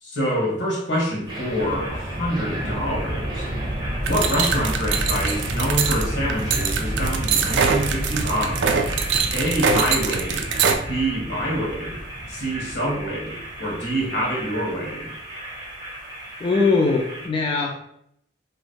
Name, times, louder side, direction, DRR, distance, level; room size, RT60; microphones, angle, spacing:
voice 1, 0.0-3.5 4.1-8.7 9.3-10.5 10.9-12.0 12.3-15.1, equal, 80° left, -3 dB, 1.2 m, -26 dB
sound 1, 1.3-17.3, right 1 dB, 25° right, 0.7 m, -30 dB
sound 2, 4.1-10.8, right 6 dB, 75° right, 0.4 m, -23 dB
voice 2, 16.4-17.9, left 4 dB, 30° left, 0 dB, 0.3 m, -21 dB
2.9 x 2.3 x 3.2 m, 0.71 s
head